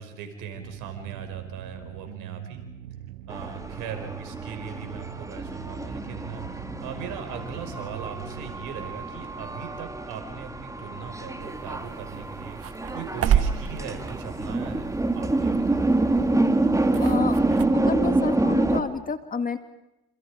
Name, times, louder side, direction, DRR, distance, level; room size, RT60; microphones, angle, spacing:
voice 1, 0.0-2.6 3.3-15.8, right 6 dB, 65° right, 6 dB, 5.4 m, -39 dB
sound 1, 0.6-8.6, right 11 dB, 85° right, 1.3 m, -42 dB
sound 2, 3.3-18.8, right 2 dB, 10° right, 2.1 m, -27 dB
sound 3, 11.4-17.7, right 9 dB, 45° right, 1.3 m, -31 dB
voice 2, 16.1-16.5 16.8-17.4 17.7-19.6, left 5 dB, 25° left, 10 dB, 1.8 m, -30 dB
28.0 x 27.5 x 5.0 m, 0.94 s
hypercardioid pair, 80°, 33 cm